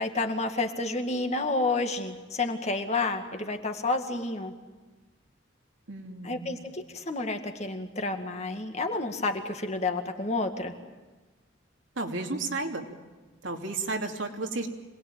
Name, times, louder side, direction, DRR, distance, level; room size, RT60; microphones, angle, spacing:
voice 1, 0.0-4.5 6.2-10.7, left 3 dB, 35° left, 5 dB, 2.0 m, -30 dB
voice 2, 5.9-6.7 12.0-12.9 13.4-14.7, right 3 dB, 80° right, 2 dB, 2.8 m, -33 dB
26.5 x 20.0 x 9.0 m, 1.3 s
head